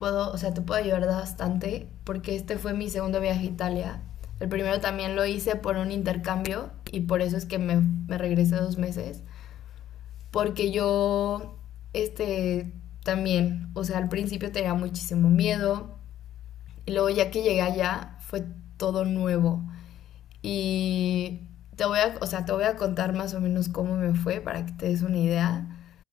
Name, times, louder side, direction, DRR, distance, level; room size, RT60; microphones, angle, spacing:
voice 1, 0.0-4.1 4.3-9.5 10.3-11.6 11.9-16.0 16.9-20.0 20.4-21.5 21.8-25.9, left 12 dB, 35° left, 0.7 m, -27 dB
cardioid pair, 175°, 0 cm